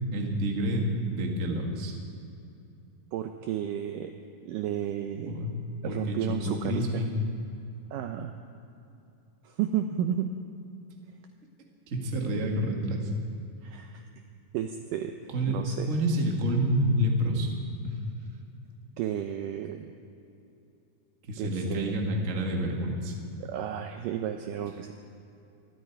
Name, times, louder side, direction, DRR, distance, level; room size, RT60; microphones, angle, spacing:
voice 1, 0.1-1.9 5.3-5.5 5.8-7.1 11.9-13.1 15.3-15.6 15.9-17.5 17.8-17.9 21.2-23.1, equal, 35° right, 1 dB, 1.2 m, -28 dB
voice 2, 3.1-4.1 4.4-5.3 5.8-7.1 7.9-8.4 9.4-10.3 13.6-14.1 14.5-15.1 15.5-15.9 19.0-19.9 21.4-22.0 23.4-24.9, right 10 dB, 80° right, 6 dB, 2.0 m, -32 dB
25.0 x 12.5 x 4.6 m, 2.7 s
omnidirectional pair, 4.5 m